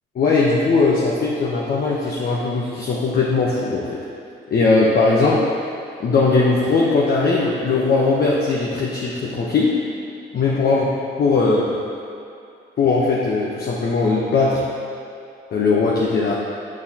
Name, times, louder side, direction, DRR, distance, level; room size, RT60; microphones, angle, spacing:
voice 1, 0.1-4.1 4.5-5.4 6.0-9.8 10.3-10.9 11.2-11.7 12.8-14.6 15.5-16.3, left 3 dB, 50° left, -4 dB, 0.9 m, -19 dB
8.4 x 6.8 x 2.9 m, 2.6 s
cardioid pair, 90°, 20 cm